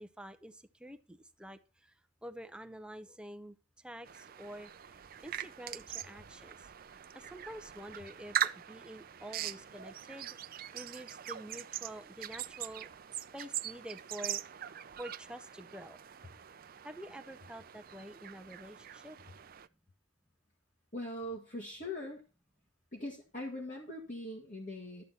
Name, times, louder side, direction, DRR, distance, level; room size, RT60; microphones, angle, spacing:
voice 1, 0.0-1.9 2.2-4.7 5.2-6.6 6.9-10.4 10.7-14.4 15.0-16.0 16.8-19.2, equal, 5° right, 7 dB, 0.7 m, -48 dB
sound 1, 4.1-19.7, right 11 dB, 45° right, 0.5 m, -42 dB
voice 2, 20.9-22.2 22.9-25.0, left 1 dB, 40° left, 0 dB, 1.6 m, -41 dB
12.0 x 7.9 x 4.2 m, 0.31 s
head